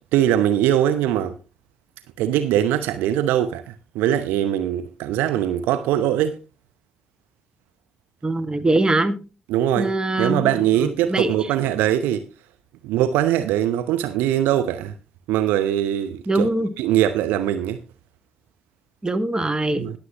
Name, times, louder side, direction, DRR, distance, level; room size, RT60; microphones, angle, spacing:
voice 1, 0.1-1.3 2.2-6.4 9.5-9.9 10.2-12.3 12.8-14.9 15.3-16.5 16.8-17.8 19.7-19.9, right 11 dB, 70° right, 0.7 m, -21 dB
voice 2, 8.2-9.2 9.7-11.3 16.3-16.7 19.0-19.8, right 2 dB, 25° right, 1.6 m, -22 dB
20.5 x 7.6 x 3.0 m
figure-of-eight pair, 40°, 3 cm